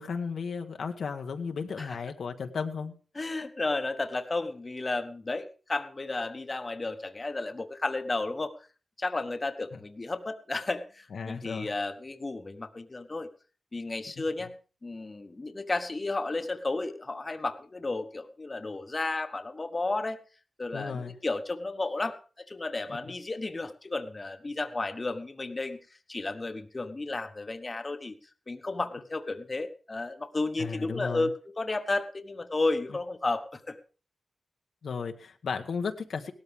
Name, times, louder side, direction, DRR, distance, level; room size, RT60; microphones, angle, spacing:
voice 1, 0.0-2.9 9.7-9.8 11.1-11.8 14.2-14.3 20.7-21.2 22.9-23.0 30.6-31.3 34.8-36.3, left 5 dB, 80° left, 5 dB, 1.2 m, -34 dB
voice 2, 3.1-8.5 9.0-13.3 13.7-14.5 14.8-20.2 20.6-25.8 26.1-28.2 28.5-33.8, left 2 dB, 35° left, 8 dB, 1.2 m, -33 dB
17.5 x 13.0 x 3.6 m, 0.36 s
cardioid pair, 70°, 0 cm